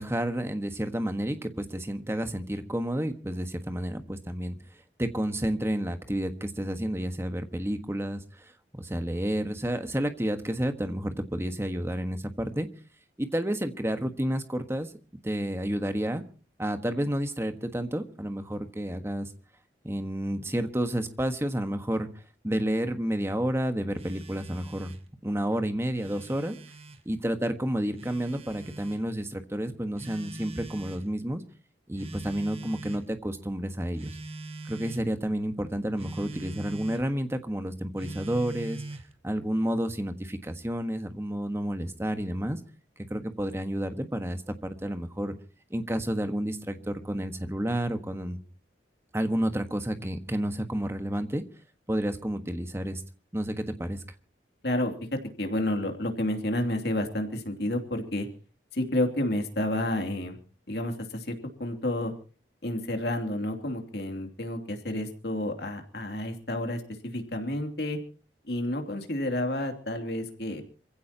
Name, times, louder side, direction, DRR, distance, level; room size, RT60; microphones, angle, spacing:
voice 1, 0.0-4.6 5.0-12.7 13.2-14.9 15.2-16.2 16.6-19.3 19.8-22.1 22.4-24.9 25.2-26.6 27.0-31.4 31.9-34.2 34.7-38.8 39.2-42.6 43.1-45.3 45.7-48.4 49.1-51.4 51.9-53.0 53.3-54.0, right 1 dB, 15° right, 7 dB, 1.4 m, -30 dB
Telephone, 24.0-25.1 25.8-27.0 28.0-29.0 30.0-31.1 32.0-33.1 34.0-35.1 36.0-37.1 38.0-39.1, right 2 dB, 35° right, 1.5 m, -42 dB
voice 2, 55.4-58.3 58.7-60.4 60.7-62.1 62.6-68.0 68.5-70.6, left 1 dB, 65° left, 5 dB, 2.9 m, -30 dB
27.0 x 16.0 x 2.9 m, 0.37 s
head